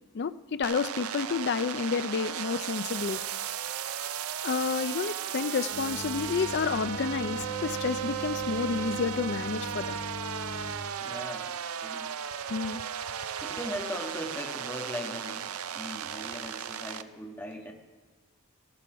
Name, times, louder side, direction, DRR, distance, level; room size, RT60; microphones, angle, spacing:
voice 1, 0.1-3.2 4.4-10.0 12.5-12.8, left 5 dB, 50° left, 14 dB, 0.4 m, -30 dB
sound 1, 0.6-17.0, right 8 dB, 80° right, 0.6 m, -35 dB
sound 2, 5.7-10.7, left 1 dB, 70° left, 5.8 m, -41 dB
voice 2, 11.0-12.1 13.4-15.4 15.7-17.7, left 1 dB, 10° left, 0 dB, 1.5 m, -39 dB
16.0 x 10.5 x 5.0 m, 1.3 s
head